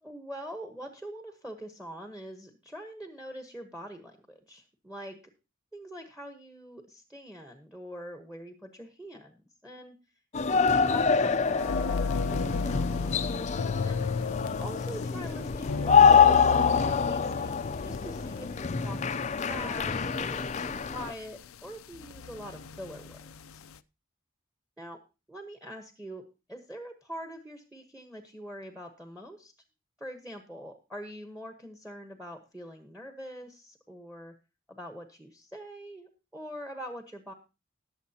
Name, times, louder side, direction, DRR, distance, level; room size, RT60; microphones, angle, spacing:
voice 1, 0.0-5.2 5.7-10.0 10.4-13.2 13.8-14.1 14.6-23.6 24.8-25.0 25.3-29.5 30.0-34.3 34.7-37.3, equal, 5° right, 6 dB, 1.1 m, -44 dB
sound 1, 10.3-21.1, left 6 dB, 35° left, 0.5 m, -25 dB
sound 2, 11.6-23.8, left 5 dB, 90° left, 0.5 m, -35 dB
20.5 x 7.3 x 2.8 m, 0.30 s
head